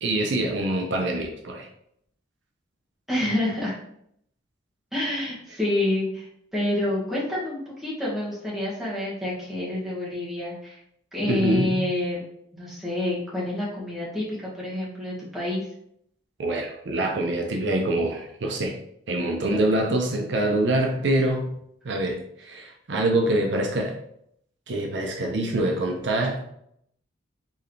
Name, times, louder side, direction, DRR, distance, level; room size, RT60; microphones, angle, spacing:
voice 1, 0.0-1.7 11.3-11.8 16.4-18.8 19.1-21.5 21.8-24.0 24.7-26.5, right 1 dB, 65° right, 2 dB, 0.6 m, -25 dB
voice 2, 3.1-3.8 4.9-10.8 11.1-12.2 12.5-15.6, left 1 dB, ahead, -8 dB, 1.5 m, -28 dB
4.6 x 3.2 x 3.2 m, 0.73 s
head